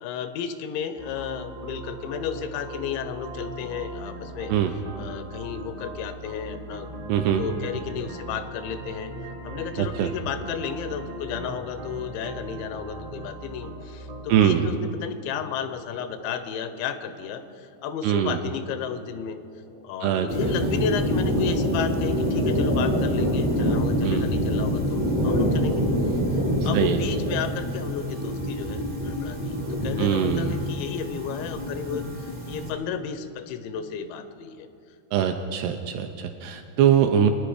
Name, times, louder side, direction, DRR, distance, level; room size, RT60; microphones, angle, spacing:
voice 1, 0.0-4.5 5.0-6.9 7.4-9.1 9.4-19.4 19.8-34.7, left 7 dB, 90° left, 10 dB, 3.1 m, -33 dB
sound 1, 1.0-14.5, right 1 dB, 40° right, 0.7 m, -39 dB
voice 2, 7.1-7.4 9.8-10.1 14.3-14.7 18.0-18.4 20.0-20.3 24.0-24.3 26.7-27.0 30.0-30.6 35.1-37.3, right 9 dB, 85° right, 6 dB, 2.4 m, -22 dB
Frog, 11.2-23.9 24.2-28.9, left 1 dB, 75° left, 1.4 m, -42 dB
sound 2, 20.3-32.7, equal, 70° right, 0.5 m, -26 dB
23.0 x 9.9 x 5.0 m, 2.6 s
omnidirectional pair, 5.1 m